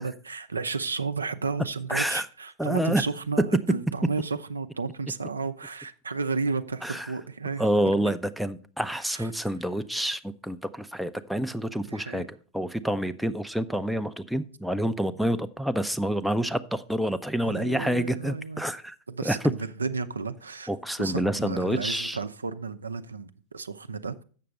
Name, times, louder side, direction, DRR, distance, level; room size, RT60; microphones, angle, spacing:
voice 1, 0.0-7.7 9.0-9.3 11.9-12.3 17.4-18.6 19.1-20.7 21.0-24.2, right 4 dB, 75° right, 0.5 m, -32 dB
voice 2, 1.9-2.3 2.6-3.0 3.5-3.6 6.8-7.1 7.6-19.0 19.2-19.4 20.7-22.2, right 1 dB, ahead, 0.5 m, -28 dB
7.5 x 6.7 x 5.3 m
figure-of-eight pair, 90°, 0 cm